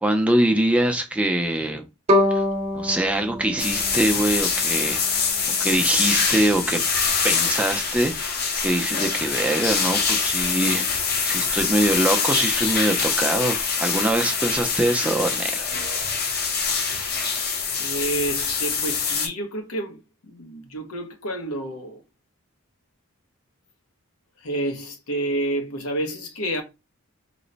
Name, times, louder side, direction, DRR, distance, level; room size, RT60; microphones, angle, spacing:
voice 1, 0.0-1.9 2.3-2.4 2.7-5.2 5.6-6.8 7.2-15.7, right 1 dB, 5° right, 0.4 m, -23 dB
Bowed string instrument, 2.1-5.1, left 1 dB, 30° right, 0.8 m, -25 dB
sound 1, 3.6-19.3, left 5 dB, 45° left, 0.7 m, -24 dB
voice 2, 16.9-17.2 17.8-22.0 24.4-26.6, right 1 dB, 80° left, 0.8 m, -29 dB
3.0 x 2.1 x 3.8 m
head